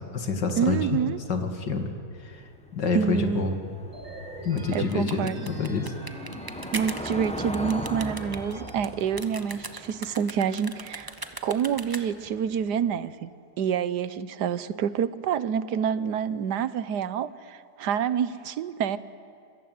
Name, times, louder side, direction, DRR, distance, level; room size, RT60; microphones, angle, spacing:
voice 1, 0.0-0.9 1.3-1.9 2.2-2.4 2.7-3.6 4.4-5.9, left 4 dB, 85° left, 6 dB, 2.9 m, -28 dB
voice 2, 0.6-1.2 2.9-3.6 4.7-5.4 6.7-11.1 11.4-13.3 13.6-19.0, right 8 dB, 70° right, 15 dB, 1.5 m, -27 dB
Car passing by / Engine, 2.3-13.0, left 1 dB, 5° left, 1.4 m, -40 dB
sound 1, 3.9-8.9, right 1 dB, 50° right, 3.5 m, -41 dB
sound 2, 4.4-12.3, right 2 dB, 15° right, 1.1 m, -40 dB
27.5 x 22.5 x 9.5 m, 2.5 s
omnidirectional pair, 1.8 m